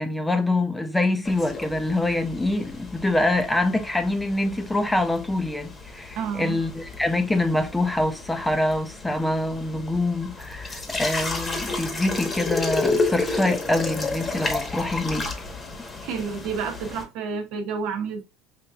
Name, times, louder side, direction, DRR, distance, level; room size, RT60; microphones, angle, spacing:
voice 1, 0.0-15.3, left 2 dB, 10° left, 0.6 m, -25 dB
sound 1, 1.2-17.0, left 3 dB, 25° left, 1.1 m, -32 dB
voice 2, 6.2-6.6 16.0-18.2, right 6 dB, 65° right, 1.0 m, -30 dB
5.3 x 2.7 x 2.3 m
supercardioid pair, 100°, 0 cm